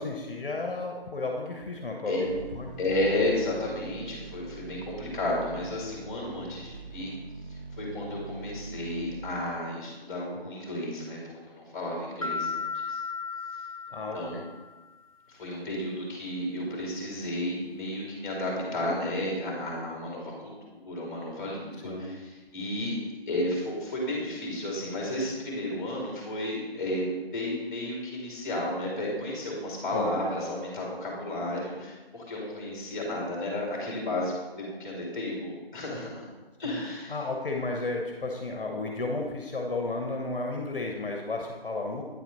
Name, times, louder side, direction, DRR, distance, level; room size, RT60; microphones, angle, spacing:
voice 1, 0.0-2.7 13.9-14.4 21.8-22.1 29.9-30.1 37.1-42.0, left 2 dB, 60° left, 1 dB, 1.1 m, -33 dB
sound 1, 2.2-9.3, right 5 dB, 60° right, 0.8 m, -44 dB
voice 2, 2.8-7.1 7.5-13.0 13.9-14.4 15.3-22.2 22.5-23.0 23.3-36.2 36.6-37.2, left 1 dB, 15° left, -2 dB, 2.0 m, -32 dB
sound 2, 12.2-14.9, left 5 dB, 35° left, 0.5 m, -35 dB
9.1 x 4.4 x 4.2 m, 1.2 s
figure-of-eight pair, 160°, 31 cm